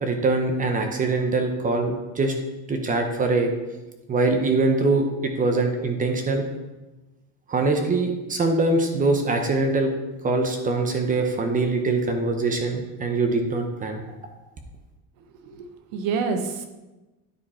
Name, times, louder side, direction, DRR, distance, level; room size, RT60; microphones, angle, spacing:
voice 1, 0.0-2.3 2.7-3.5 4.1-6.4 7.5-9.9 10.2-14.0, right 3 dB, 20° right, 5 dB, 0.6 m, -23 dB
voice 2, 15.5-16.6, right 5 dB, 85° right, 6 dB, 1.1 m, -28 dB
9.9 x 4.4 x 4.3 m, 1.1 s
cardioid pair, 160°, 39 cm